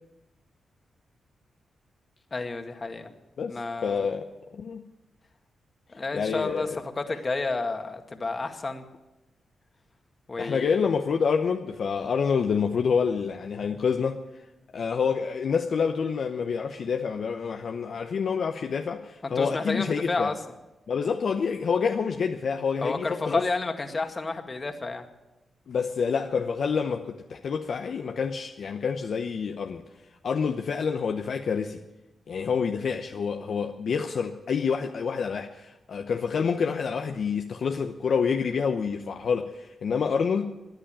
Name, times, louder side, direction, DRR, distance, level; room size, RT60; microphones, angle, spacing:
voice 1, 2.3-3.1 3.5-4.1 5.9-8.8 10.3-10.8 19.2-20.4 22.8-25.0, left 3 dB, 40° left, 6 dB, 1.9 m, -30 dB
voice 2, 3.4-4.8 6.1-6.8 10.4-14.2 14.7-20.3 20.9-23.4 25.7-29.8 30.2-31.8 32.3-40.5, left 6 dB, 65° left, 4 dB, 0.8 m, -27 dB
14.0 x 10.0 x 9.0 m, 1.0 s
supercardioid pair, 45°, 0 cm